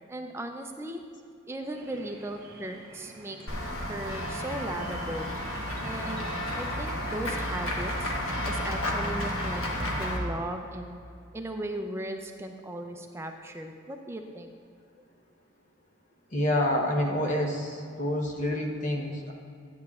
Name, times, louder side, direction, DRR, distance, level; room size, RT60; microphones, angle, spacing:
voice 1, 0.1-1.0 1.5-3.4 3.8-5.3 5.8-6.3 6.5-8.1 8.5-11.0 11.3-14.5, right 1 dB, 10° right, 5 dB, 0.4 m, -37 dB
sound 1, 1.7-8.8, right 2 dB, 45° right, 1.2 m, -49 dB
Run / Walk footsteps / Bell, 3.5-10.2, left 1 dB, 80° left, 1.2 m, -32 dB
voice 2, 16.3-19.3, left 1 dB, 35° left, 1 dB, 0.8 m, -28 dB
9.6 x 9.5 x 2.4 m, 2.4 s
head